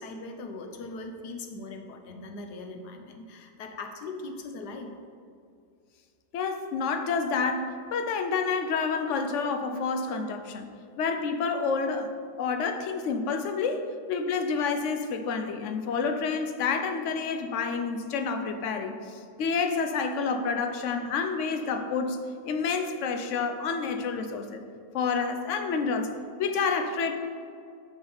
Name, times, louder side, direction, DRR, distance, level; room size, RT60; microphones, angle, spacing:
voice 1, 0.0-4.9, left 3 dB, 85° left, 5 dB, 1.4 m, -40 dB
voice 2, 6.3-12.1 12.4-22.2 22.4-24.6 24.9-27.2, left 5 dB, 65° left, 7 dB, 0.8 m, -29 dB
9.5 x 6.0 x 3.9 m, 2.3 s
omnidirectional pair, 1.7 m